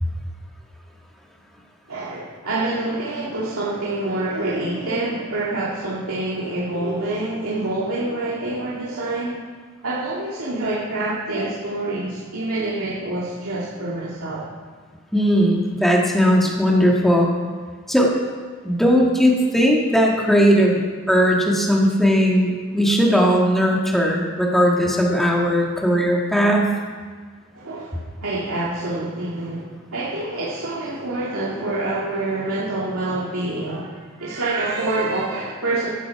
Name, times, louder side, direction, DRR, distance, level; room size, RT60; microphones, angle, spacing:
voice 1, 1.9-9.4 9.8-14.4 27.5-35.9, right 2 dB, 80° right, -8 dB, 2.3 m, -26 dB
voice 2, 15.1-17.3 17.9-18.1 18.6-20.8 21.1-26.7, equal, ahead, -2 dB, 1.7 m, -18 dB
14.5 x 12.5 x 4.7 m, 1.5 s
head